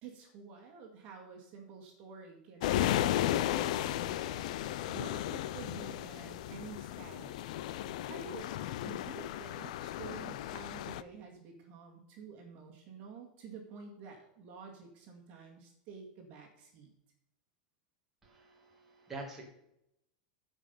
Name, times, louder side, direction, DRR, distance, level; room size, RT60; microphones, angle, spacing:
voice 1, 0.0-4.2 4.9-7.4 7.8-16.9, right 5 dB, 30° right, 2 dB, 2.1 m, -50 dB
sound 1, 2.6-11.0, left 12 dB, 55° left, 0.5 m, -34 dB
voice 2, 18.2-19.4, right 2 dB, 5° right, -3 dB, 1.9 m, -46 dB
14.5 x 5.5 x 5.6 m, 0.80 s
supercardioid pair, 180°, 4 cm